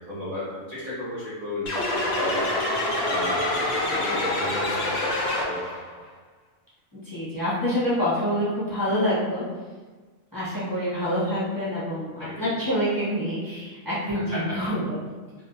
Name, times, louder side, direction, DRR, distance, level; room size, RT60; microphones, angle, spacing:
voice 1, 0.0-2.5 3.0-6.0 12.2-12.5 14.3-14.6, left 1 dB, 60° right, -9 dB, 0.4 m, -33 dB
sound 1, 1.7-5.8, left 1 dB, 65° left, 0.7 m, -26 dB
voice 2, 3.8-4.2 6.9-9.4 10.3-15.0, equal, 20° right, -10 dB, 0.7 m, -27 dB
2.7 x 2.2 x 2.5 m, 1.4 s
omnidirectional pair, 1.5 m